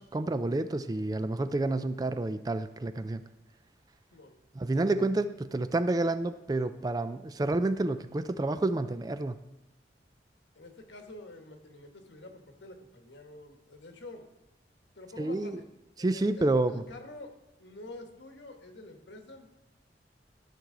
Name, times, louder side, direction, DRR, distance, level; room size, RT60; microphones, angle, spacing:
voice 1, 0.0-3.2 4.6-9.4 15.2-15.6 16.0-16.8, right 2 dB, 20° right, 12 dB, 0.3 m, -29 dB
voice 2, 10.5-14.3 14.9-15.7 16.0-17.3 17.6-19.5, left 2 dB, 80° left, 4 dB, 1.3 m, -48 dB
13.0 x 6.1 x 3.8 m, 0.98 s
head